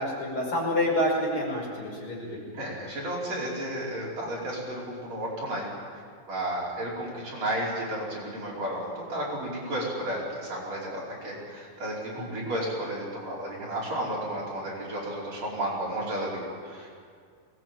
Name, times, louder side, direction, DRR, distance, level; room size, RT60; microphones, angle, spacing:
voice 1, 0.0-2.3 2.6-2.8 12.2-12.5, left 1 dB, 35° left, -3 dB, 6.5 m, -28 dB
voice 2, 2.5-5.7 6.3-16.9, right 1 dB, 45° right, -5 dB, 6.4 m, -33 dB
23.0 x 19.5 x 9.1 m, 2.1 s
omnidirectional pair, 4.1 m